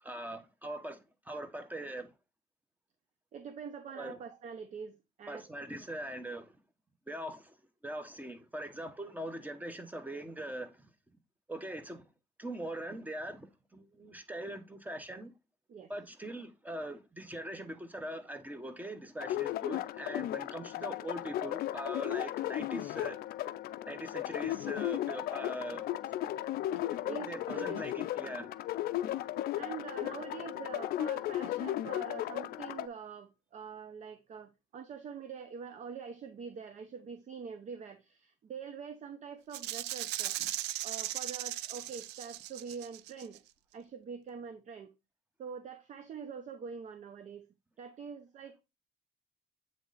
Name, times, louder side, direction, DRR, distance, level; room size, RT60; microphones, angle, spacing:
voice 1, 0.0-2.1 3.9-4.2 5.3-6.6 7.1-7.6 7.8-10.9 11.5-12.0 12.4-15.3 15.9-23.2 23.9-25.9 26.9-28.5 40.4-40.5, right 1 dB, 10° right, 1.0 m, -42 dB
voice 2, 3.3-5.5 15.7-15.9 27.1-27.9 28.2-28.5 29.6-40.4 40.8-43.4 43.7-45.0 45.4-47.5 47.8-48.6, right 6 dB, 45° right, 0.7 m, -45 dB
sound 1, 19.2-32.9, left 13 dB, 65° left, 0.4 m, -35 dB
Rattle (instrument), 39.5-43.4, right 14 dB, 90° right, 0.4 m, -38 dB
7.9 x 3.2 x 4.0 m
cardioid pair, 110°, 17 cm